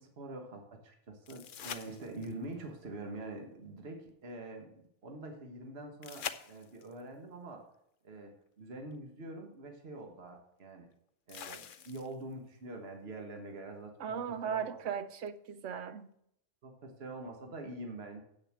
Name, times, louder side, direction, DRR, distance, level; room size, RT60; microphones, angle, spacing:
voice 1, 0.0-7.6 8.0-10.9 11.3-14.9 16.6-18.2, right 2 dB, 60° right, 1.6 m, -45 dB
sound 1, 1.2-2.5 6.0-7.0 8.9-9.0 11.3-12.3 15.3-15.4, left 8 dB, 55° left, 0.7 m, -44 dB
voice 2, 14.0-16.1, right 7 dB, 80° right, 1.1 m, -37 dB
8.2 x 6.5 x 7.3 m
omnidirectional pair, 1.2 m